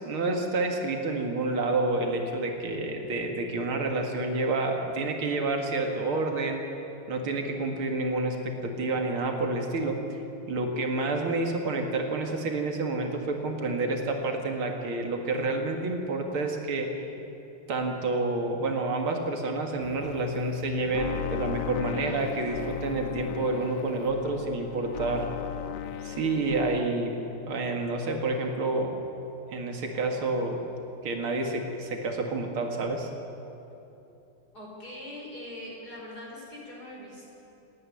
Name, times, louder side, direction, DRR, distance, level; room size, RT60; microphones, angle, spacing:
voice 1, 0.0-6.6 7.1-10.0 10.5-16.9 17.7-25.3 26.0-27.2 27.5-29.0 29.5-30.6 31.0-33.1, right 2 dB, 80° right, 3 dB, 2.8 m, -29 dB
sound 1, 19.8-26.8, left 12 dB, 65° left, 1.1 m, -36 dB
voice 2, 34.5-37.3, left 1 dB, 45° left, -3 dB, 5.5 m, -42 dB
27.5 x 10.0 x 9.8 m, 2.9 s
omnidirectional pair, 2.3 m